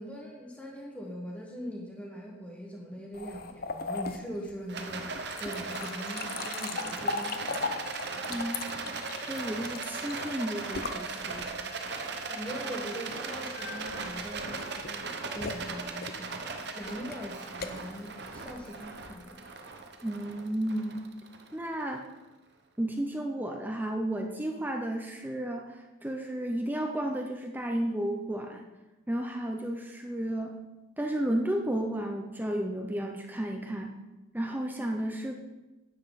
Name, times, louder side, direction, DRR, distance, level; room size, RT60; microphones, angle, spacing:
voice 1, 0.0-5.1 5.4-7.4 12.3-19.4, equal, 5° left, -2 dB, 1.3 m, -41 dB
sound 1, 3.1-11.8 13.5-19.3, left 4 dB, 45° left, 0.5 m, -39 dB
Rattle, 4.7-22.1, right 4 dB, 55° right, 0.9 m, -38 dB
voice 2, 8.3-8.7 9.3-11.5 20.0-21.0 21.5-22.0 22.8-28.7 29.1-30.6 31.0-33.9 34.3-35.3, right 1 dB, 10° right, 3 dB, 0.6 m, -33 dB
10.0 x 7.8 x 4.0 m, 1.1 s
head